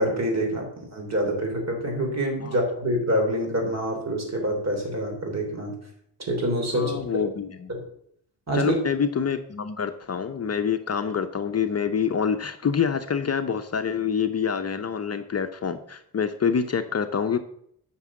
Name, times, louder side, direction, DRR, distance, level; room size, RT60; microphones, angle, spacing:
voice 1, 0.0-5.7 6.2-7.3 7.7-7.8 8.5-8.8, equal, 40° right, 2 dB, 3.5 m, -26 dB
voice 2, 6.7-7.7 8.5-17.4, left 7 dB, 40° left, 7 dB, 0.7 m, -26 dB
9.5 x 6.1 x 7.4 m, 0.69 s
wide cardioid pair, 140°, 40 cm